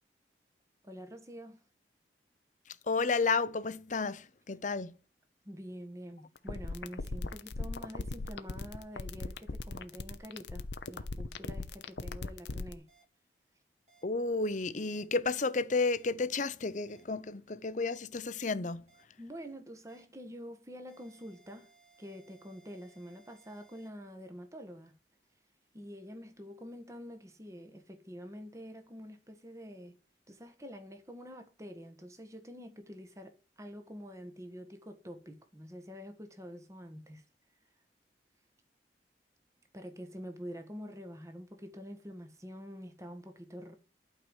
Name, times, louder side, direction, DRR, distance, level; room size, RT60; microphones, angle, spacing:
voice 1, 0.8-1.6 5.4-12.9 19.2-21.7 22.0-25.0 25.7-30.0 30.3-37.2 39.7-43.7, equal, 20° right, 1.5 m, -47 dB
voice 2, 2.7-4.9 14.0-18.8, left 4 dB, 45° left, 0.7 m, -32 dB
sound 1, 6.4-12.7, left 3 dB, 80° left, 0.8 m, -38 dB
sound 2, 12.9-13.0 13.9-14.0 14.9-15.0 15.9-16.0 16.9-17.0 17.9-18.0 18.9-19.0 19.9-20.0 20.9-23.9, right 4 dB, 40° right, 3.5 m, -64 dB
12.0 x 4.8 x 8.1 m
head